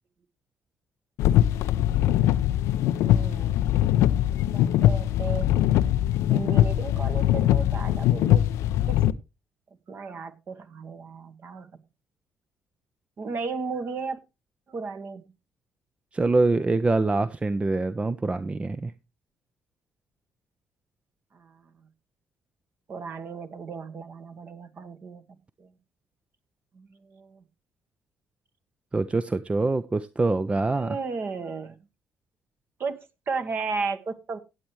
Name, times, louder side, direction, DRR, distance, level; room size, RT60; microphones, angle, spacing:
sound 1, 1.2-9.1, left 12 dB, 65° left, 0.5 m, -22 dB
voice 1, 3.0-3.6 4.3-5.6 6.3-8.5 8.8-9.0 9.9-11.8 13.2-14.2 14.7-15.3 21.3-21.9 22.9-25.2 25.6-25.7 26.7-27.4 30.7-31.8 32.8-33.0 33.3-34.4, right 4 dB, 45° right, 1.4 m, -35 dB
voice 2, 16.1-18.9 28.9-31.0, right 3 dB, 20° right, 0.6 m, -24 dB
17.0 x 7.8 x 3.1 m
hypercardioid pair, 50°, 5 cm